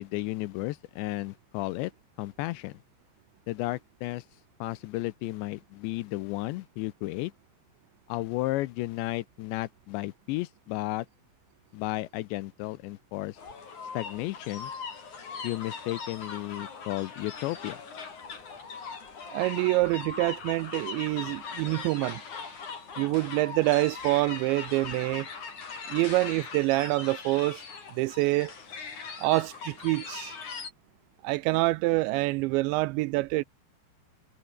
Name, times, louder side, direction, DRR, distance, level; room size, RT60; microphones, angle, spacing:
voice 1, 0.0-1.9 2.2-2.8 3.5-4.2 4.6-7.3 8.1-11.1 11.7-13.4 13.9-14.7 15.4-17.8, left 18 dB, 80° left, 2.8 m, -33 dB
sound 1, 13.4-30.7, left 5 dB, 40° left, 5.3 m, -40 dB
voice 2, 19.3-22.2 23.0-25.3 25.9-27.6 28.0-28.5 29.2-30.4 31.2-33.4, right 21 dB, 80° right, 2.7 m, -26 dB
omnidirectional pair, 5.5 m